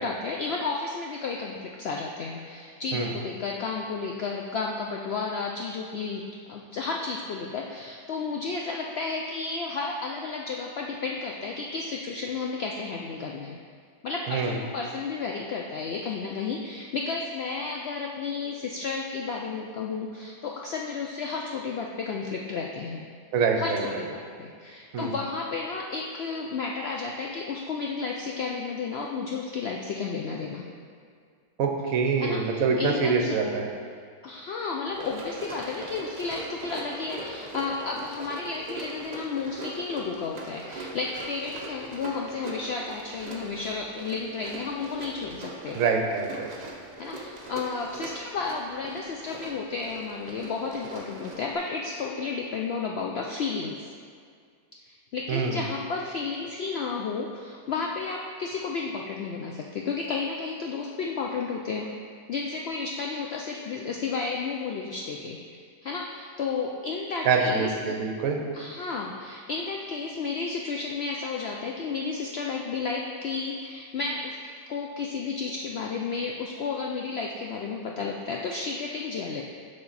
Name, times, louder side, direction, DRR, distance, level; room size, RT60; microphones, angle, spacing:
voice 1, 0.0-13.6 14.0-23.0 23.6-30.6 32.2-33.4 34.2-45.8 47.0-53.9 54.9-61.9 62.3-68.0 68.5-74.4 74.7-79.4, left 4 dB, 80° left, 0 dB, 0.5 m, -32 dB
voice 2, 23.3-24.0 24.9-25.1 31.6-33.7 45.7-46.5 55.3-55.6 67.2-68.4, right 5 dB, 65° right, 2 dB, 1.2 m, -25 dB
Run, 34.9-51.6, right 2 dB, 40° right, 0.6 m, -41 dB
6.9 x 5.2 x 4.0 m, 2.1 s
omnidirectional pair, 1.6 m